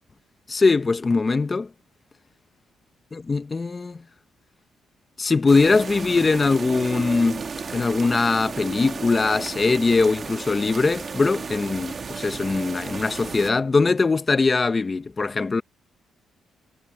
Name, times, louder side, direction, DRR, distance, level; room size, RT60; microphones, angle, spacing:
voice 1, 0.5-1.7 3.1-4.0 5.2-7.4 7.7-15.6, left 4 dB, 30° left, 1.0 m, -21 dB
sound 1, 5.5-13.5, right 5 dB, 40° right, 1.6 m, -34 dB
cardioid pair, 90°, 0 cm